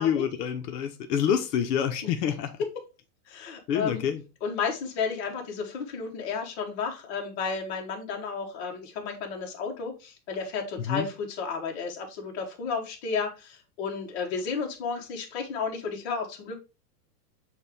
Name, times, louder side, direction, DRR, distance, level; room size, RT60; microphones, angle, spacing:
voice 1, 0.0-2.5 3.7-4.2 10.8-11.1, left 8 dB, 85° left, 0.8 m, -27 dB
voice 2, 3.3-4.0 4.4-16.6, left 5 dB, 45° left, 1.1 m, -32 dB
6.2 x 2.5 x 3.4 m
supercardioid pair, 170°, 48 cm